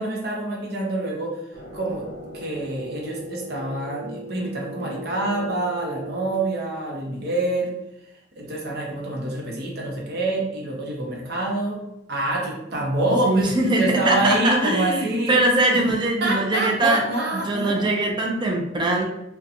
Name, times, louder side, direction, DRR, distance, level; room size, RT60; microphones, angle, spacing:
voice 1, 0.0-1.4 1.7-2.1 2.3-7.7 8.4-11.8 12.1-15.4 15.7-15.8 16.2-17.9, right 2 dB, 60° right, -2 dB, 0.7 m, -26 dB
sound 1, 1.5-6.3, right 1 dB, 50° left, 0.6 m, -38 dB
voice 2, 13.2-17.0 17.3-19.0, right 2 dB, 25° right, 1 dB, 0.4 m, -22 dB
2.7 x 2.2 x 2.5 m, 0.87 s
head